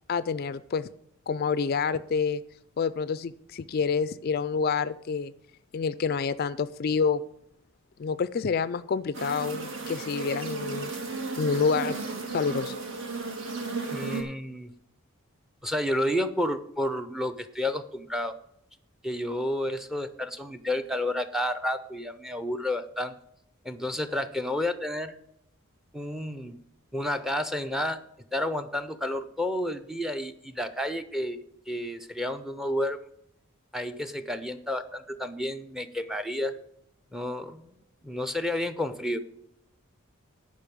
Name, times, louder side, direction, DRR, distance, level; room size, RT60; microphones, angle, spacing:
voice 1, 0.1-0.9 1.3-2.4 2.8-5.3 5.7-7.2 8.0-10.9 11.4-11.9 12.3-12.7, left 5 dB, 45° left, 15 dB, 0.3 m, -28 dB
sound 1, 9.1-14.2, right 3 dB, 60° right, 1.6 m, -34 dB
voice 2, 13.9-14.7 15.6-18.4 19.0-23.2 23.6-25.2 25.9-26.6 26.9-28.0 28.3-33.0 33.7-36.5 37.1-37.8 38.0-39.2, left 1 dB, ahead, 12 dB, 0.6 m, -31 dB
10.0 x 5.4 x 8.4 m, 0.74 s
head